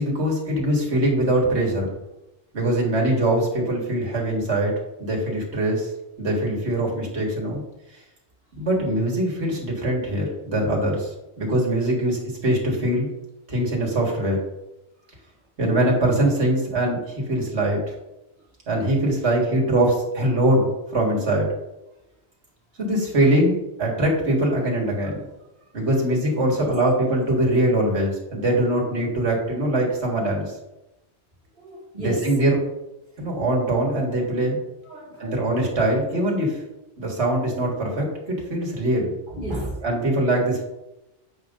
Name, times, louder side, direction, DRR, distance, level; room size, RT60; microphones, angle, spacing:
voice 1, 0.0-2.0 2.5-5.9 6.2-7.6 8.6-11.1 11.4-13.1 13.5-14.4 15.6-17.9 18.7-21.5 22.8-25.2 25.7-30.5 32.0-32.6 33.2-34.6 35.2-36.6 37.0-38.1 38.5-39.1 39.8-40.6, right 1 dB, 80° right, -2 dB, 2.1 m, -22 dB
voice 2, 31.5-32.3 34.8-35.4 39.3-39.8, right 1 dB, 50° right, -4 dB, 2.3 m, -32 dB
7.8 x 5.3 x 3.7 m, 0.95 s
omnidirectional pair, 1.1 m